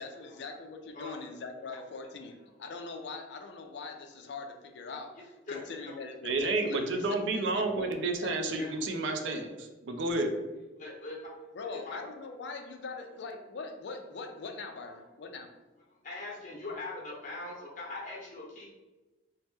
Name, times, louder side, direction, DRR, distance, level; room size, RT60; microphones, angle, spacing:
voice 1, 0.0-5.2 5.5-7.1 7.3-8.7 11.5-15.5, left 4 dB, 65° left, 5 dB, 0.4 m, -42 dB
voice 2, 6.2-9.5 9.8-10.4, right 2 dB, 75° right, 5 dB, 0.4 m, -30 dB
voice 3, 10.8-11.2 11.6-12.0 16.0-18.7, left 2 dB, 45° left, -4 dB, 0.8 m, -41 dB
2.8 x 2.1 x 3.4 m, 1.1 s
head